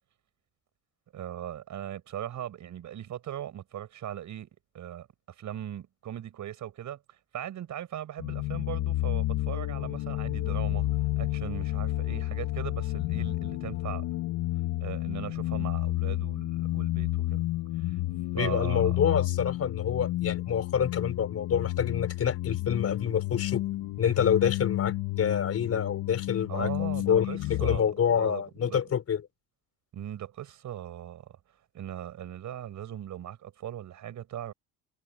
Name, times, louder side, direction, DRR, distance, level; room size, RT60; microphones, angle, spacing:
voice 1, 1.1-4.5 4.7-5.1 5.4-7.0 7.3-10.9 11.2-14.1 14.8-17.4 17.8-18.0 18.3-19.0 26.5-28.8 29.9-31.4 31.7-34.5, right 11 dB, 50° right, 7.1 m, -39 dB
sound 1, 8.2-27.8, left 17 dB, 65° left, 1.7 m, -31 dB
voice 2, 18.3-23.6 24.0-29.2, left 8 dB, 40° left, 4.7 m, -27 dB
supercardioid pair, 100°, 37 cm